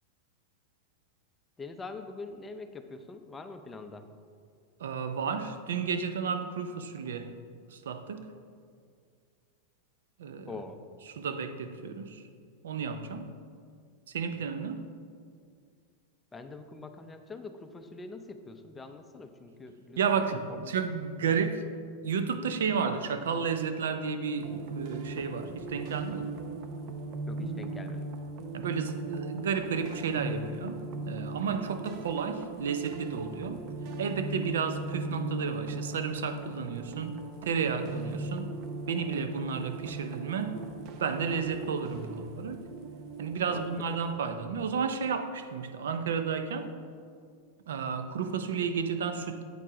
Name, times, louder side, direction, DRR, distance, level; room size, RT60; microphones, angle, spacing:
voice 1, 1.6-4.1 10.5-10.8 16.3-20.7 21.2-21.3 27.3-28.1 43.5-44.1, left 3 dB, 15° left, 7 dB, 0.5 m, -44 dB
voice 2, 4.8-7.3 7.7-8.2 10.2-10.5 11.2-12.2 12.6-13.3 14.1-14.8 20.0-21.6 22.0-26.3 28.5-33.6 34.0-38.5 38.9-40.5 41.0-42.6 43.2-46.7 47.7-49.4, right 6 dB, 85° right, 9 dB, 0.6 m, -32 dB
sound 1, 24.4-44.1, right 2 dB, 50° right, 0.7 m, -39 dB
8.3 x 4.6 x 4.9 m, 2.2 s
hypercardioid pair, 125°, 0 cm